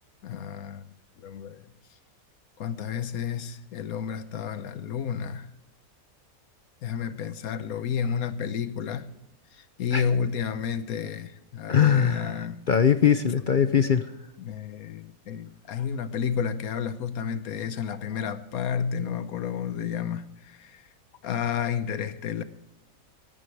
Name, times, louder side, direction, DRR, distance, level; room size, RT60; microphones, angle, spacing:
voice 1, 0.2-0.9 1.2-1.6 2.6-5.5 6.8-9.1 9.5-12.6 14.4-20.8 21.2-22.4, left 7 dB, 85° left, 1.3 m, -31 dB
voice 2, 11.7-14.1, left 8 dB, 50° left, 0.6 m, -22 dB
17.5 x 14.0 x 3.3 m
omnidirectional pair, 1.5 m